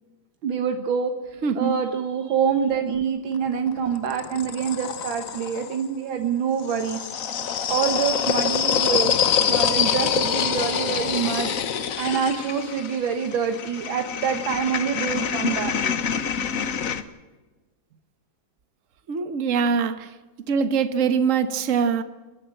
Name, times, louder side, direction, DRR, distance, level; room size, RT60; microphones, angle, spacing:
voice 1, 0.4-1.1 1.6-7.0 7.7-11.5 12.0-15.9, right 7 dB, 80° right, 2.0 m, -26 dB
voice 2, 1.4-1.7 19.1-20.1 20.5-22.0, right 6 dB, 45° right, 1.4 m, -23 dB
sound 1, 3.3-5.8 6.6-17.0, left 7 dB, 50° left, 1.3 m, -26 dB
29.5 x 10.5 x 9.0 m
omnidirectional pair, 2.1 m